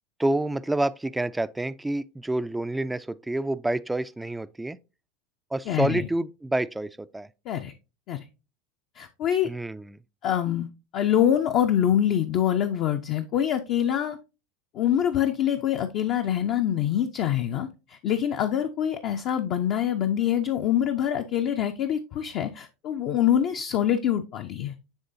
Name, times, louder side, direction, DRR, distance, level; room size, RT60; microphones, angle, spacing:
voice 1, 0.2-4.8 5.5-7.3 9.4-10.0, right 2 dB, 10° right, 0.3 m, -28 dB
voice 2, 5.7-6.0 7.5-7.7 8.1-8.2 9.0-9.5 10.2-10.7 10.9-14.2 14.7-24.7, left 10 dB, 50° left, 0.5 m, -25 dB
9.7 x 3.6 x 2.7 m
hypercardioid pair, 85°, 0 cm